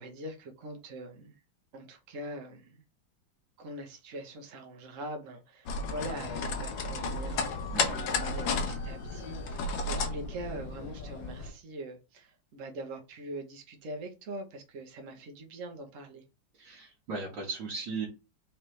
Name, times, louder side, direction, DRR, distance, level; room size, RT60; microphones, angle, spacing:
voice 1, 0.0-1.4 1.7-2.8 3.6-16.2, right 1 dB, 50° right, 1.2 m, -43 dB
sound 1, 5.7-11.5, left 3 dB, 85° left, 1.6 m, -33 dB
voice 2, 7.7-8.2 16.5-18.1, right 4 dB, 75° right, 2.1 m, -37 dB
4.8 x 3.2 x 3.2 m
omnidirectional pair, 2.1 m